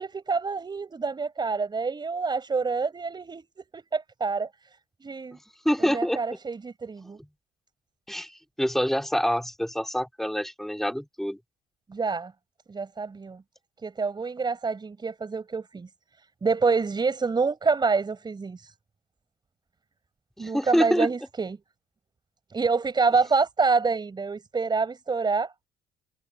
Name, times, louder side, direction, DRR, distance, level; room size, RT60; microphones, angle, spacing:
voice 1, 0.0-4.5 5.0-5.4 5.9-7.2 11.9-12.3 12.7-13.4 13.8-15.9 16.4-18.7 20.4-21.6 22.5-25.5, right 4 dB, 25° right, 5.6 m, -27 dB
voice 2, 5.6-6.2 7.2-7.3 8.1-8.3 8.6-11.4 20.4-21.1, equal, ahead, 2.8 m, -26 dB
cardioid pair, 110°, 17 cm